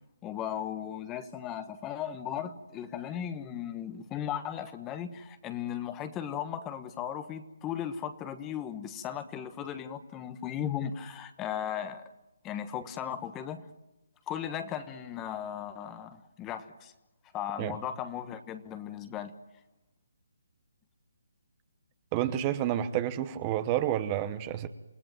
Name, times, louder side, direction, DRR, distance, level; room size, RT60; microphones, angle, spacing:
voice 1, 0.2-12.0 12.4-13.7 14.3-16.9 17.3-19.3, left 9 dB, 15° left, 10 dB, 1.2 m, -36 dB
voice 2, 22.1-24.7, right 12 dB, 20° right, 11 dB, 1.0 m, -29 dB
28.5 x 17.0 x 9.2 m, 0.94 s
hypercardioid pair, 165°, 0 cm